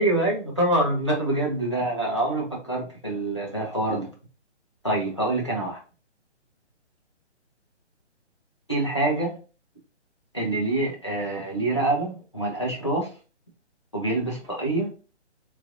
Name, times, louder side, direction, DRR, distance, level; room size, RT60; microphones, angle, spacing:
voice 1, 0.0-4.1 4.8-5.8 8.7-9.4 10.3-13.1 13.9-14.9, right 2 dB, 25° left, -3 dB, 0.5 m, -25 dB
3.0 x 2.5 x 2.6 m, 0.35 s
hypercardioid pair, 175°, 35 cm